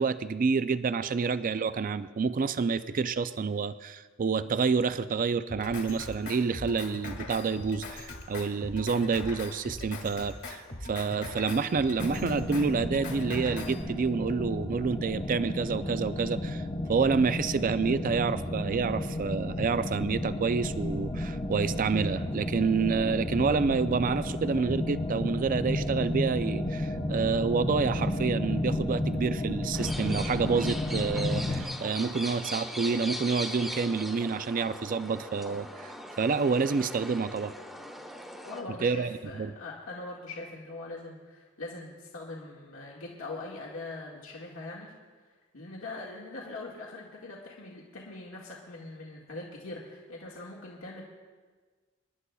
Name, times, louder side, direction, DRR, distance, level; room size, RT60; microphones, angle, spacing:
voice 1, 0.0-16.6 16.9-37.5 38.8-39.1 39.4-39.5, right 5 dB, 40° right, 12 dB, 0.4 m, -28 dB
Drum kit, 5.5-13.8, left 2 dB, 60° left, 1.9 m, -41 dB
sound 1, 12.0-31.6, left 1 dB, 20° left, 0.8 m, -32 dB
sound 2, 29.7-38.6, equal, ahead, 1.1 m, -40 dB
voice 2, 38.4-44.9 45.5-51.0, left 2 dB, 85° left, -3 dB, 1.9 m, -42 dB
28.0 x 11.0 x 2.3 m, 1.4 s
head